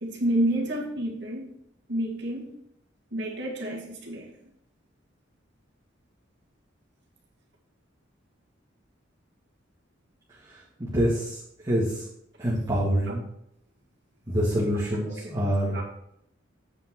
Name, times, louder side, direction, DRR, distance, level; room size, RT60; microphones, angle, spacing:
voice 1, 0.0-1.5 1.9-2.6 3.1-4.3 12.8-12.9 14.7-15.2 15.7-15.8, right 1 dB, 60° right, -1 dB, 2.0 m, -29 dB
voice 2, 10.8-11.4 11.6-12.0 12.4-13.2 14.3-15.8, equal, 20° right, -9 dB, 2.0 m, -25 dB
8.3 x 5.5 x 4.6 m, 0.75 s
head